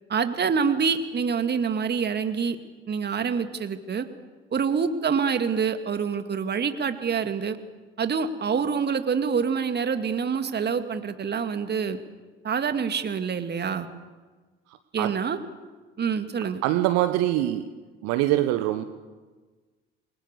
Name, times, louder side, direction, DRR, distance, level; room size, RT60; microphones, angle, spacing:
voice 1, 0.1-2.6 2.9-4.1 4.5-7.6 8.0-12.0 12.4-13.9 14.9-15.4 16.0-16.6, right 6 dB, 35° right, 9 dB, 2.4 m, -26 dB
voice 2, 14.7-15.2 16.6-17.7 18.0-18.8, right 14 dB, 55° right, 10 dB, 1.4 m, -24 dB
28.0 x 23.0 x 7.0 m, 1.3 s
figure-of-eight pair, 55°, 31 cm